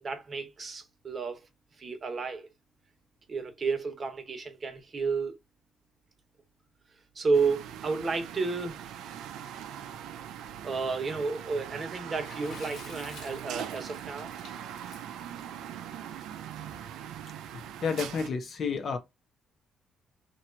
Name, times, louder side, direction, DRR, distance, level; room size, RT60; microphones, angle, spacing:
voice 1, 0.0-1.5 1.8-2.5 3.3-5.3 7.1-8.8 10.6-14.3, right 4 dB, 40° right, 1.0 m, -31 dB
sound 1, 7.3-18.3, right 9 dB, 85° right, 0.4 m, -41 dB
Water / Splash splatter, 12.2-16.7, left 4 dB, 80° left, 1.5 m, -50 dB
voice 2, 17.5-19.0, left 5 dB, 50° left, 0.8 m, -31 dB
2.9 x 2.5 x 4.3 m
cardioid pair, 90°, 0 cm